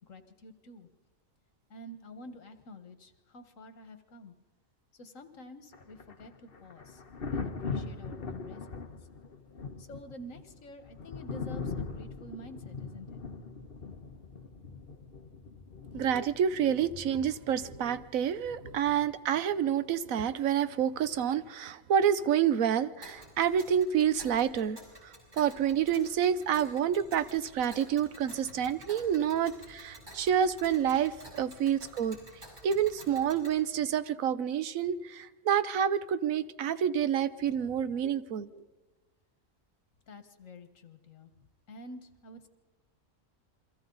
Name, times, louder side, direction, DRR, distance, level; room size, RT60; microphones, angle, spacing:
voice 1, 0.0-0.9 1.7-4.3 4.9-7.0 7.3-9.0 9.8-13.2 28.5-28.6 37.7-37.8 40.1-41.3 41.7-42.5, left 1 dB, 75° left, 8 dB, 1.9 m, -49 dB
Thunder, 5.7-19.4 21.0-21.2, left 4 dB, 45° left, 1.4 m, -41 dB
voice 2, 15.9-24.8 25.0-32.2 32.6-38.6, right 9 dB, 85° right, 14 dB, 1.2 m, -28 dB
Tick, 23.0-33.6, equal, 35° right, 6.5 m, -51 dB
28.5 x 23.5 x 4.0 m, 1.2 s
omnidirectional pair, 1.4 m